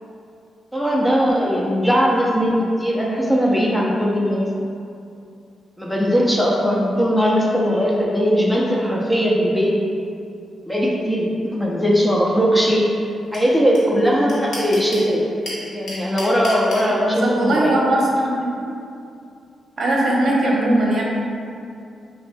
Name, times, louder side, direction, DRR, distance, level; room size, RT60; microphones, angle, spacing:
voice 1, 0.7-4.5 5.8-9.7 10.7-12.8 13.3-15.2 15.7-17.7, equal, ahead, -3 dB, 0.6 m, -19 dB
sound 1, 13.3-13.4 13.7-13.8 14.0-15.1 15.4-16.8, left 2 dB, 70° left, 1.2 m, -31 dB
voice 2, 17.0-18.7 19.8-21.0, right 1 dB, 60° right, -3 dB, 0.8 m, -20 dB
5.8 x 2.6 x 2.2 m, 2.5 s
cardioid pair, 75°, 0 cm